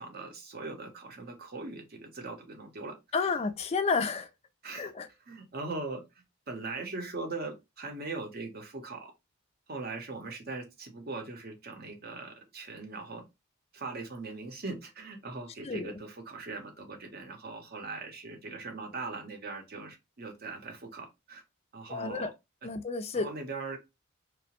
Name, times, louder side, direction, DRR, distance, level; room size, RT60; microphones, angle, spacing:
voice 1, 0.0-3.3 4.6-4.9 5.3-9.1 9.7-13.2 13.7-21.4 21.7-22.3 23.1-23.8, right 3 dB, 45° right, 0.7 m, -40 dB
voice 2, 3.1-4.3 4.7-5.1 15.6-16.0 21.9-22.3 22.6-23.3, left 4 dB, 30° left, 0.3 m, -31 dB
2.8 x 2.1 x 2.8 m
head